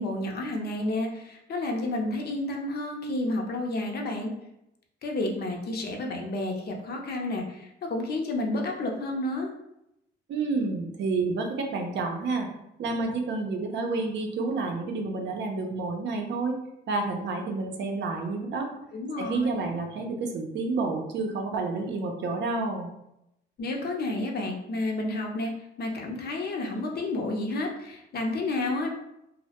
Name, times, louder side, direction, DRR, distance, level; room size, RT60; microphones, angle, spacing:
voice 1, 0.0-4.3 5.0-9.5 18.9-19.7 23.6-28.9, left 2 dB, 55° left, 2 dB, 0.5 m, -30 dB
voice 2, 10.3-12.5 12.8-16.5 16.9-18.7 19.2-22.9, right 3 dB, 65° right, 2 dB, 0.5 m, -29 dB
2.1 x 2.0 x 2.8 m, 0.83 s
cardioid pair, 90°, 20 cm